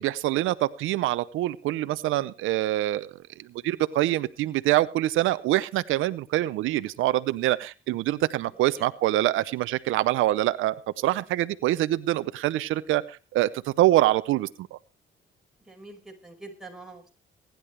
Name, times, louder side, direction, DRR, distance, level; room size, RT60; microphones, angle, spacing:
voice 1, 0.0-3.1 3.4-14.8, right 15 dB, 85° right, 14 dB, 0.7 m, -25 dB
voice 2, 8.5-8.9 15.6-17.1, right 2 dB, 5° right, -1 dB, 5.3 m, -45 dB
23.0 x 10.5 x 3.3 m, 0.30 s
cardioid pair, 90°, 20 cm